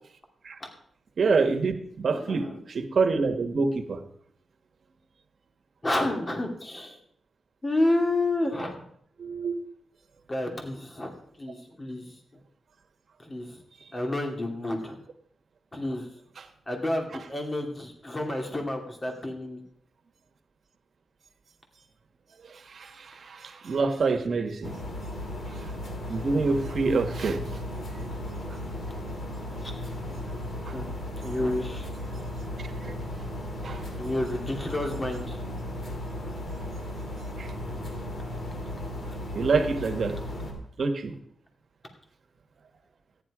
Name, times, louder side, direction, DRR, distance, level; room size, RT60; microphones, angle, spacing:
voice 1, 1.2-4.0 9.2-9.5 16.4-16.5 17.1-17.2 22.4-24.7 25.5-25.7 26.1-27.4 30.6-30.8 32.6-32.9 33.6-33.9 37.4-37.5 39.3-40.2 40.8-41.1, right 4 dB, 55° right, 6 dB, 1.6 m, -27 dB
voice 2, 2.1-2.6 5.8-7.0 7.6-8.8 10.3-12.0 13.2-13.5 13.9-15.0 15.7-16.1 16.7-19.6 29.6-29.7 30.7-30.9 31.2-32.0 34.0-35.7, left 1 dB, 25° left, 3 dB, 2.6 m, -30 dB
sound 1, 24.6-40.5, left 1 dB, 55° left, 3.1 m, -35 dB
14.0 x 10.5 x 4.9 m, 0.65 s
wide cardioid pair, 115°, 0 cm